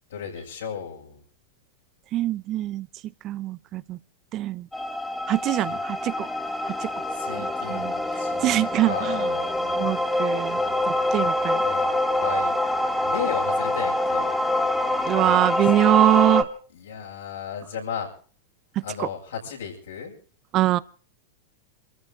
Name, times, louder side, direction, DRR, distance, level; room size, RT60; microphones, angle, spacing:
voice 1, 0.1-1.2 5.6-5.8 7.1-10.0 10.5-10.7 11.1-11.3 11.6-12.6 13.0-14.3 15.2-15.6 16.7-18.1 18.8-20.1, left 7 dB, 80° left, 7.4 m, -35 dB
voice 2, 2.1-2.9 3.2-4.0 4.3-4.7 5.3-6.3 6.6-6.9 7.4-7.9 8.4-9.2 9.7-10.6 10.9-11.6 15.0-16.5 19.0-19.1 20.5-20.8, right 14 dB, 40° right, 0.8 m, -23 dB
sound 1, 4.7-16.4, left 1 dB, 5° left, 2.5 m, -25 dB
27.0 x 14.0 x 3.7 m
hypercardioid pair, 105°, 0 cm